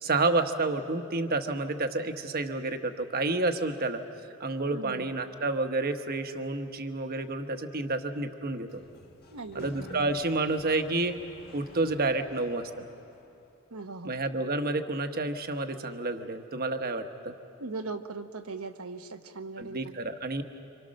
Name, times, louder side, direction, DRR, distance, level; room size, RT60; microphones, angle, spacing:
voice 1, 0.0-8.8 9.5-11.2 11.5-12.9 14.0-17.4 19.6-20.6, right 2 dB, 45° right, 7 dB, 1.2 m, -30 dB
voice 2, 4.7-5.1 9.3-9.7 13.7-14.1 17.6-19.9, right 3 dB, 80° right, 8 dB, 1.1 m, -39 dB
Sliding door, 8.4-13.5, left 1 dB, 45° left, 1.6 m, -52 dB
27.5 x 25.5 x 6.5 m, 2.6 s
head